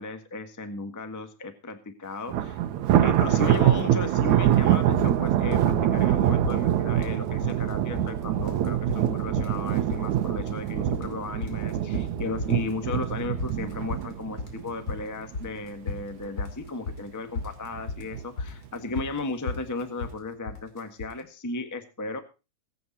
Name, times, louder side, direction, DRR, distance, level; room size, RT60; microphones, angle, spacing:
voice 1, 0.0-2.6 3.0-22.2, left 3 dB, 10° left, 7 dB, 0.8 m, -35 dB
Thunder, 2.3-15.6 16.0-16.3 16.7-16.8 17.6-18.2, right 11 dB, 75° right, 2.3 m, -24 dB
sound 1, 3.1-3.2 3.5-4.2 4.5-5.2 5.4-5.7 6.0-6.1 6.4-7.2 7.4-8.1 8.4-21.2, left 4 dB, 30° left, 3.0 m, -36 dB
20.5 x 8.6 x 4.3 m, 0.31 s
omnidirectional pair, 3.3 m